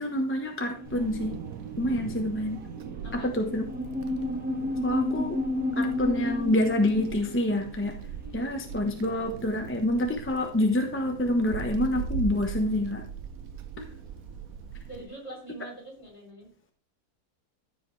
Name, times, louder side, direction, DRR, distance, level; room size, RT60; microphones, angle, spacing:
voice 1, 0.0-1.3 1.8-2.6 3.1-3.6 4.8-5.4 5.8-7.9 8.3-13.0, left 1 dB, 10° left, 3 dB, 0.7 m, -27 dB
sound 1, 0.7-9.0, left 2 dB, 5° right, 1.2 m, -33 dB
Wind, 0.8-15.0, right 6 dB, 65° right, 1.1 m, -40 dB
voice 2, 3.0-3.5 13.7-13.8 14.9-16.5, right 1 dB, 40° left, -2 dB, 4.3 m, -44 dB
14.0 x 5.0 x 3.2 m, 0.43 s
omnidirectional pair, 1.7 m